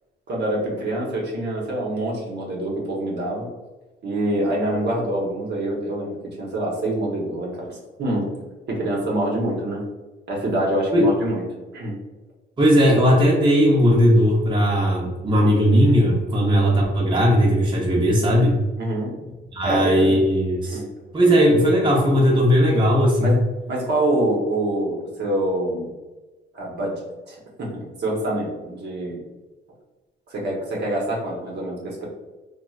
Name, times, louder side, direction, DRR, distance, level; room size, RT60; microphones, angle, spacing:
voice 1, 0.3-3.5 4.0-8.3 8.7-9.8 10.3-11.4 11.7-12.0 18.8-19.2 19.6-20.2 20.6-20.8 23.2-23.4 23.7-25.9 26.5-29.2 30.3-32.1, right 1 dB, 55° right, -3 dB, 0.9 m, -25 dB
voice 2, 12.6-18.5 19.5-20.8 21.1-23.4, equal, 25° right, -3 dB, 0.7 m, -17 dB
2.9 x 2.3 x 2.3 m, 1.2 s
cardioid pair, 90°, 20 cm